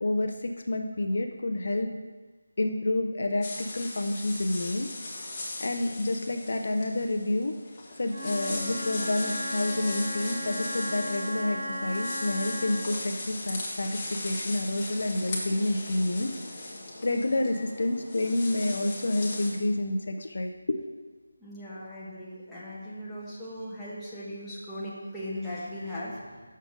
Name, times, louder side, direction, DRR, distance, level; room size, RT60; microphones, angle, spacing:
voice 1, 0.0-1.9 2.6-4.9 5.2-5.3 5.6-7.5 8.0-16.3 17.0-20.8, left 2 dB, 60° left, 5 dB, 0.5 m, -29 dB
sound 1, 3.4-19.5, left 2 dB, 25° left, 1.3 m, -38 dB
Wind instrument woodwind instrument, 8.0-13.0, left 1 dB, 30° right, 2.3 m, -36 dB
voice 2, 21.4-26.6, left 1 dB, 5° left, -10 dB, 1.2 m, -38 dB
6.5 x 5.0 x 6.4 m, 1.4 s
figure-of-eight pair, 170°, 0 cm